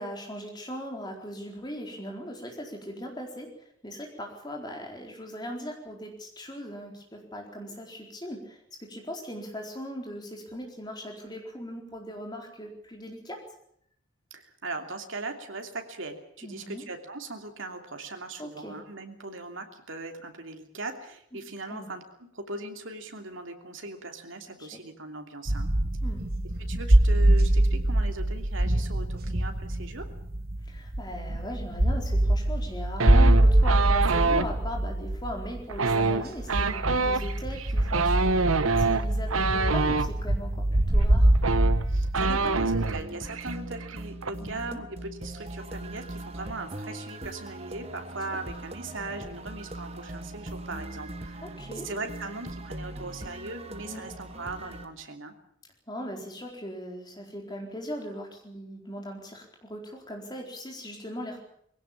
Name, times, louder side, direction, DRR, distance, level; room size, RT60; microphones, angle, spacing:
voice 1, 0.0-13.4 16.4-16.8 18.4-18.7 21.7-21.9 24.6-24.8 26.0-26.2 30.6-41.3 44.4-44.8 51.4-51.9 53.9-54.0 55.9-61.4, equal, 20° left, 1 dB, 4.4 m, -39 dB
voice 2, 14.3-25.7 26.6-30.1 41.9-51.5 51.8-55.3, right 2 dB, 70° right, 5 dB, 3.0 m, -39 dB
sound 1, 25.5-43.0, right 1 dB, 45° right, 1.6 m, -24 dB
sound 2, 33.0-34.5 35.7-40.1 41.0-41.1 41.3-43.0 43.3-43.6 43.8-44.3, right 4 dB, 90° right, 1.1 m, -26 dB
sound 3, 42.1-54.9, right 1 dB, 30° right, 1.6 m, -40 dB
20.5 x 17.0 x 8.8 m, 0.70 s
head